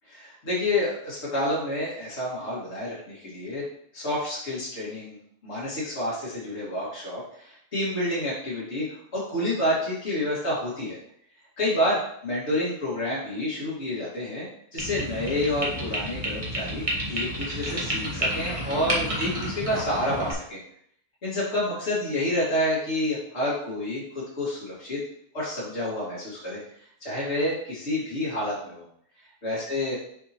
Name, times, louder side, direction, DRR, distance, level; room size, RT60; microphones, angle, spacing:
voice 1, 0.1-3.6 3.9-5.2 5.4-11.0 11.6-20.6 21.2-25.0 25.3-26.6 27.0-28.8 29.4-30.0, left 1 dB, 60° left, -8 dB, 2.4 m, -29 dB
sound 1, 14.8-20.3, equal, 30° right, 1.3 m, -30 dB
7.0 x 4.7 x 2.9 m, 0.67 s
omnidirectional pair, 1.3 m